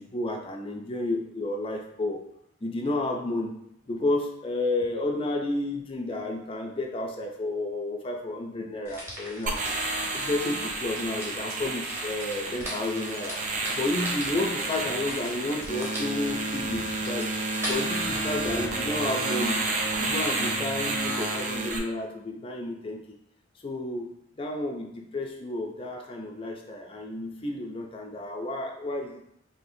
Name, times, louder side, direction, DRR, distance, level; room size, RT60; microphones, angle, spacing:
voice 1, 0.0-2.2 2.6-3.6 3.9-9.7 10.1-13.4 13.7-17.3 17.7-19.7 20.0-23.2 23.6-29.2, left 2 dB, 30° left, 2 dB, 0.4 m, -31 dB
sound 1, 8.8-17.7, equal, 15° right, 0.9 m, -41 dB
sound 2, 9.5-21.8, right 2 dB, 40° right, 0.4 m, -30 dB
Zipper (clothing), 13.6-15.1 16.0-17.2 18.0-19.1 19.7-20.1, right 1 dB, 65° right, 0.9 m, -45 dB
4.1 x 2.7 x 2.6 m, 0.74 s
head